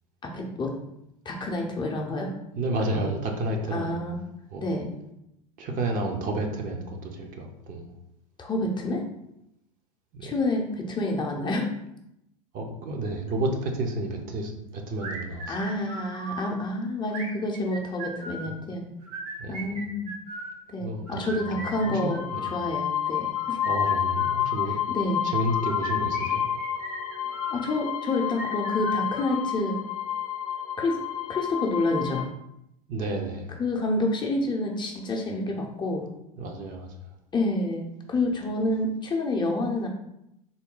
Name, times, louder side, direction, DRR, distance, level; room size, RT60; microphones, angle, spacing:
voice 1, 0.2-0.8 1.2-2.3 2.9-3.2 3.7-4.2 4.6-4.9 8.4-9.1 10.2-11.7 15.5-18.8 19.5-20.1 20.7-22.2 22.5-23.6 24.7-25.2 27.5-29.8 30.8-31.0 31.3-32.3 33.6-36.1 37.3-39.9, left 2 dB, 25° left, 0 dB, 0.7 m, -28 dB
voice 2, 2.6-4.0 4.5-4.7 5.6-7.9 10.1-10.3 12.5-15.5 18.4-18.5 19.4-19.8 20.8-22.5 23.6-24.8 25.2-26.4 32.9-33.5 36.4-36.9, right 2 dB, 45° right, 2 dB, 0.7 m, -31 dB
sound 1, 15.0-16.5 17.1-18.5 19.0-20.6 21.1-22.6 23.2-24.7 25.4-27.7 28.3-29.7, right 2 dB, 65° right, 1.2 m, -39 dB
sound 2, 21.4-32.2, left 10 dB, 80° left, 0.5 m, -30 dB
3.8 x 2.2 x 3.7 m, 0.82 s
hypercardioid pair, 95°, 19 cm